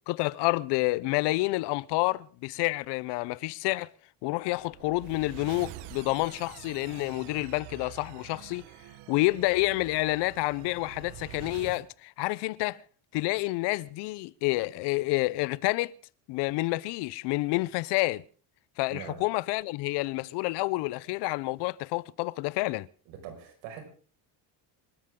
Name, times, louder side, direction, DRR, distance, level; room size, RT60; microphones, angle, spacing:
voice 1, 0.1-3.9 4.2-8.7 9.1-12.8 13.1-15.9 16.3-18.2 18.8-22.9, left 21 dB, 70° left, 0.7 m, -29 dB
sound 1, 4.5-11.9, right 13 dB, 70° right, 1.3 m, -46 dB
voice 2, 18.9-19.2 23.1-23.8, right 8 dB, 90° right, 5.7 m, -42 dB
27.0 x 13.5 x 3.7 m
cardioid pair, 155°, 43 cm